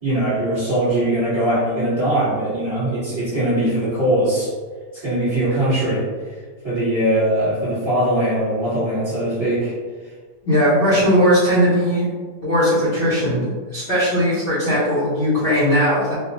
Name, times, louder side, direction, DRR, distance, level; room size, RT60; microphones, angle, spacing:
voice 1, 0.0-4.5 4.9-6.0 6.6-9.7, right 1 dB, 15° right, -11 dB, 1.5 m, -21 dB
voice 2, 10.4-12.1 12.4-16.1, equal, 40° left, -12 dB, 1.2 m, -18 dB
3.4 x 2.5 x 3.0 m, 1.5 s
omnidirectional pair, 1.7 m